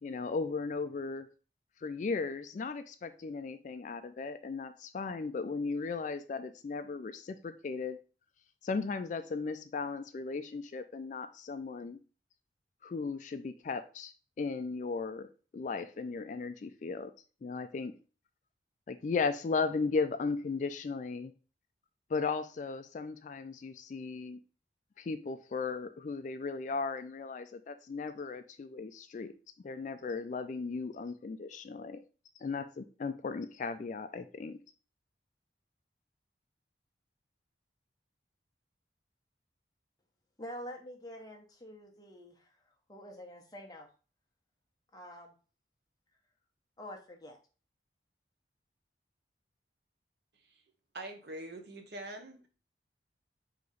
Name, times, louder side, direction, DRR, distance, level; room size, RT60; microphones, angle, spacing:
voice 1, 0.0-1.3 1.8-8.0 8.6-12.0 12.8-14.1 14.4-15.3 15.5-17.1 17.4-17.9 18.9-21.3 22.1-24.4 25.0-29.3 29.6-32.0 32.4-34.6, left 4 dB, 40° left, 0.3 m, -36 dB
voice 2, 40.4-43.9 44.9-45.3 46.8-47.4, equal, 20° left, 0.8 m, -47 dB
voice 3, 50.9-52.5, right 1 dB, 65° right, 0.8 m, -44 dB
3.9 x 2.9 x 4.8 m
head